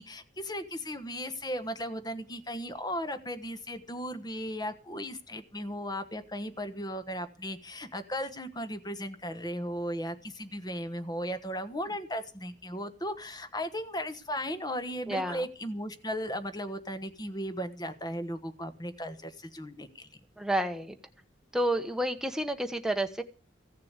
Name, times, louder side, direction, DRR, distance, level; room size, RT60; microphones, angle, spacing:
voice 1, 0.0-20.1, equal, 20° left, 9 dB, 1.2 m, -36 dB
voice 2, 15.1-15.4 20.4-21.0 21.5-23.2, right 1 dB, 5° right, 6 dB, 1.1 m, -30 dB
15.5 x 6.7 x 8.2 m, 0.39 s
head